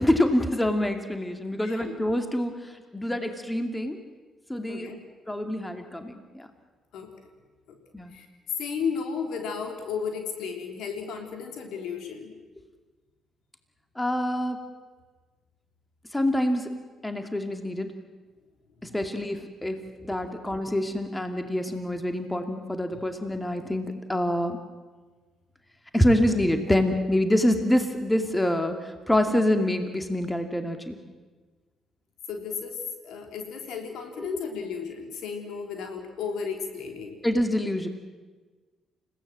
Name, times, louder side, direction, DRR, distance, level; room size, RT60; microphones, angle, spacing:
voice 1, 0.0-2.6 2.9-4.0 4.5-4.9 5.3-6.5 7.9-8.1 14.0-14.6 16.1-16.7 17.0-17.9 18.8-24.6 25.9-31.0 37.2-37.9, left 1 dB, 10° left, 6 dB, 2.4 m, -26 dB
voice 2, 1.6-1.9 4.7-5.0 6.9-7.1 7.7-7.8 8.1-8.3 8.6-12.3 18.8-19.0 32.3-37.1, left 6 dB, 60° left, 4 dB, 3.4 m, -34 dB
29.5 x 16.5 x 7.7 m, 1.4 s
figure-of-eight pair, 45°, 0 cm